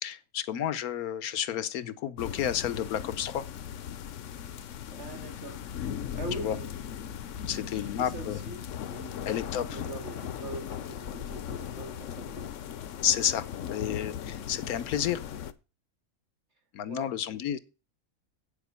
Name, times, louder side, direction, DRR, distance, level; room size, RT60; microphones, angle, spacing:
voice 1, 0.0-3.5 6.4-6.6 7.5-8.4 9.3-9.8 13.0-15.2 16.7-17.6, left 10 dB, 80° left, 1.3 m, -31 dB
sound 1, 2.2-15.5, left 9 dB, 65° left, 1.0 m, -38 dB
voice 2, 4.9-5.6 6.1-6.7 7.7-8.6 8.9-12.6 16.9-17.1, right 3 dB, 50° right, 2.6 m, -42 dB
8.5 x 7.3 x 6.8 m
omnidirectional pair, 1.5 m